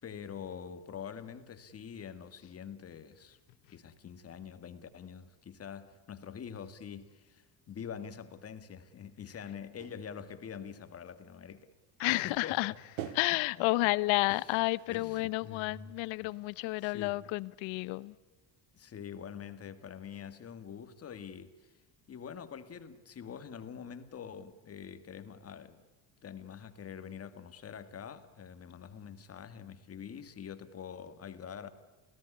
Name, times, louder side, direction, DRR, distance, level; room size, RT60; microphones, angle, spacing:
voice 1, 0.0-3.4 3.7-11.7 12.1-12.8 13.1-13.7 14.2-14.5 14.9-15.9 16.2-16.3 16.8-17.2 18.7-21.7 22.1-25.8 26.2-31.7, left 7 dB, 30° left, 1.9 m, -45 dB
sound 1, 9.8-10.1 10.5-10.9 11.4-11.5 11.8-12.3 13.0-15.5, right 12 dB, 90° right, 1.8 m, -46 dB
voice 2, 12.0-12.7 13.1-18.1, left 21 dB, 85° left, 1.0 m, -31 dB
29.0 x 17.0 x 9.9 m
cardioid pair, 150°, 45 cm